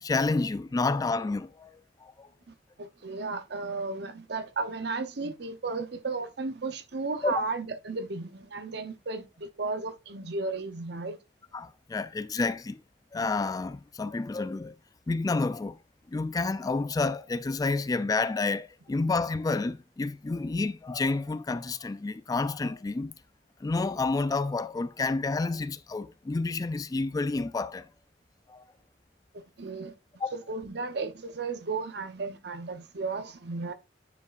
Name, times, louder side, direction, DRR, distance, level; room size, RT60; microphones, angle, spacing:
voice 1, 0.0-1.7 2.0-2.3 7.2-7.3 11.5-12.8 13.1-14.7 15.1-15.8 16.1-23.1 23.6-27.9 28.5-28.6 30.2-30.3, left 3 dB, 20° left, 0.3 m, -29 dB
voice 2, 2.5-11.2 29.3-29.9 30.3-33.7, right 3 dB, 65° right, 0.8 m, -34 dB
9.5 x 4.8 x 2.5 m
head